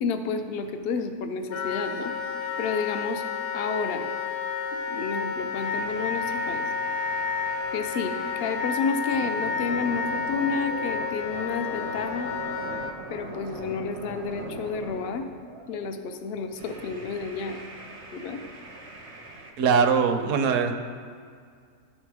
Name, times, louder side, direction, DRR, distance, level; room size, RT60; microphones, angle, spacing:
voice 1, 0.0-2.1 2.6-3.3 3.5-4.1 4.9-6.7 7.7-12.3 13.1-15.3 15.7-17.6 18.1-18.4, left 5 dB, 60° left, 7 dB, 0.6 m, -30 dB
Wind instrument woodwind instrument, 1.5-12.9, left 5 dB, 85° left, 1.2 m, -30 dB
sound 1, 5.6-8.7 9.1-15.8 16.5-19.5, right 2 dB, 35° right, 0.5 m, -42 dB
voice 2, 19.6-20.7, right 6 dB, 65° right, 7 dB, 0.9 m, -21 dB
12.5 x 4.3 x 4.7 m, 2.1 s
omnidirectional pair, 1.6 m